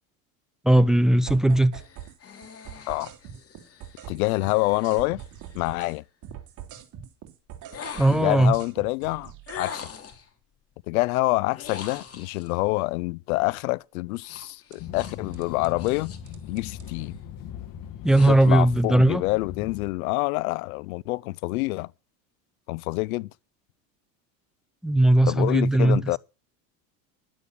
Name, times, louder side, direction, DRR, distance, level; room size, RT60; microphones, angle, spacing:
voice 1, 0.6-1.7 8.0-8.5 18.0-19.2 24.8-26.0, right 1 dB, ahead, 0.7 m, -18 dB
sound 1, 1.3-2.2 2.4-6.0 6.2-9.6 14.4-14.8 15.3-15.9 16.3-16.9, right 10 dB, 45° right, 3.0 m, -42 dB
sound 2, 1.7-5.9 7.7-8.5 9.5-10.3 11.5-12.6 14.2-16.3 16.7-17.1 17.6-18.7, left 7 dB, 35° left, 2.9 m, -43 dB
voice 2, 4.1-5.2 5.5-6.0 8.1-9.9 10.9-16.1 16.5-17.2 18.3-21.9 22.7-23.3 25.2-26.2, left 22 dB, 85° left, 0.6 m, -27 dB
sound 3, 14.8-19.9, left 9 dB, 50° left, 1.8 m, -39 dB
11.5 x 8.6 x 8.3 m
supercardioid pair, 115°, 42 cm